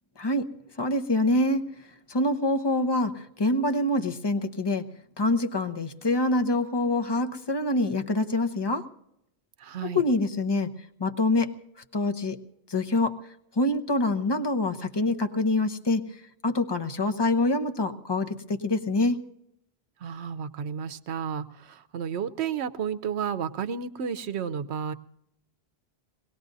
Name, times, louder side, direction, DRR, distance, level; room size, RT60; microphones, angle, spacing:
voice 1, 0.2-0.5 0.8-1.6 2.1-4.9 5.2-8.9 9.8-10.7 11.0-11.5 11.9-12.4 12.7-13.2 13.6-16.0 16.4-19.2, left 2 dB, 25° left, 7 dB, 0.8 m, -25 dB
voice 2, 9.6-10.0 20.0-24.9, right 7 dB, 85° right, 11 dB, 1.0 m, -32 dB
23.0 x 18.5 x 2.7 m, 0.78 s
omnidirectional pair, 1.1 m